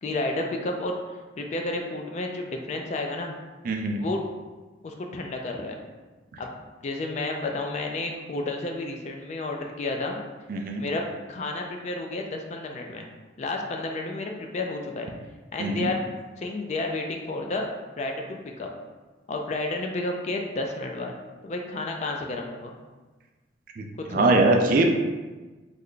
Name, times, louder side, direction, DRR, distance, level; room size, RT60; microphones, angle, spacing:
voice 1, 0.0-3.4 4.0-4.2 4.8-5.8 6.4-6.5 6.8-10.2 10.8-11.0 11.3-13.1 13.4-15.1 15.5-16.0 16.4-17.6 18.0-18.7 19.3-21.2 21.4-22.7 24.0-24.4, left 2 dB, 40° left, 2 dB, 0.3 m, -31 dB
voice 2, 3.6-4.0 10.5-10.8 15.6-15.9 23.8-24.9, right 2 dB, 50° right, 3 dB, 0.3 m, -22 dB
3.3 x 2.1 x 3.7 m, 1.3 s
head